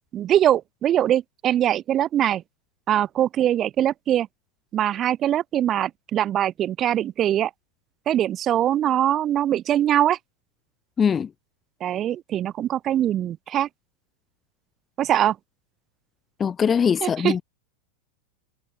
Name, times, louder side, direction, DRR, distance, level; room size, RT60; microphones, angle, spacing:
voice 1, 0.1-2.4 2.9-4.3 4.7-7.5 8.1-10.2 11.8-13.7 15.0-15.4 17.0-17.4, right 11 dB, 30° right, 5.0 m, -22 dB
voice 2, 11.0-11.3 16.4-17.4, left 7 dB, 20° left, 2.1 m, -21 dB
figure-of-eight pair, 90°, 0 cm